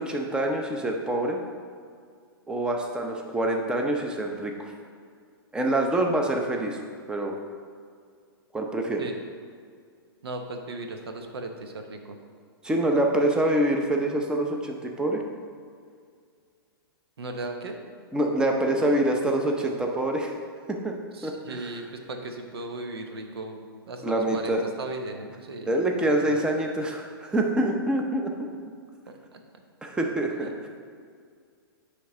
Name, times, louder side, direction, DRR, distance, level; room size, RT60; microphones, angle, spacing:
voice 1, 0.0-1.4 2.5-4.7 5.5-6.8 7.1-7.4 8.5-9.0 12.6-15.2 18.1-20.3 20.7-20.9 21.2-21.8 24.0-24.6 25.7-28.5 29.8-30.7, right 1 dB, 5° right, 2 dB, 0.6 m, -26 dB
voice 2, 10.2-12.2 17.2-17.8 21.2-25.9 26.3-26.4 29.3-29.4, right 2 dB, 85° right, 5 dB, 0.9 m, -37 dB
9.9 x 3.5 x 4.2 m, 2.1 s
hypercardioid pair, 145°, 13 cm